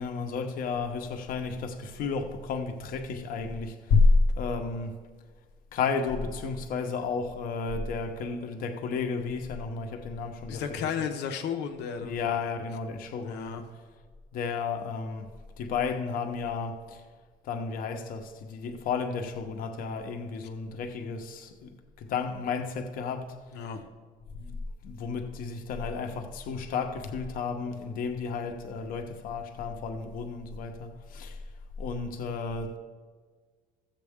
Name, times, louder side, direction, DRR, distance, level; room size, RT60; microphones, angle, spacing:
voice 1, 0.0-4.9 5.7-10.9 12.0-13.6 14.3-15.3 15.6-17.0 17.4-21.7 22.0-23.3 24.3-24.6 24.8-31.4 31.8-32.8, left 4 dB, 55° left, 0.9 m, -31 dB
voice 2, 10.5-12.5 13.2-13.6 23.5-23.8, left 7 dB, 90° left, 1.0 m, -34 dB
15.0 x 7.5 x 3.6 m
cardioid pair, 175°, 17 cm